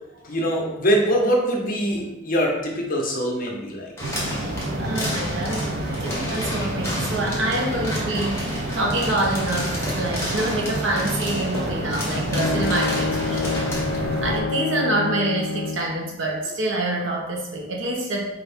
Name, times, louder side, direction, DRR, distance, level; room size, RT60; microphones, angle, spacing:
voice 1, 0.2-3.9, equal, 45° left, 0 dB, 0.8 m, -23 dB
sound 1, 4.0-14.0, left 1 dB, 15° left, 1.1 m, -32 dB
sound 2, 4.0-14.4, right 1 dB, 55° right, 0.6 m, -29 dB
voice 2, 4.8-5.7 6.0-18.3, right 1 dB, 80° right, -1 dB, 1.0 m, -26 dB
Bowed string instrument, 11.8-16.0, left 4 dB, 65° left, 0.3 m, -27 dB
4.6 x 2.6 x 3.4 m, 0.94 s
head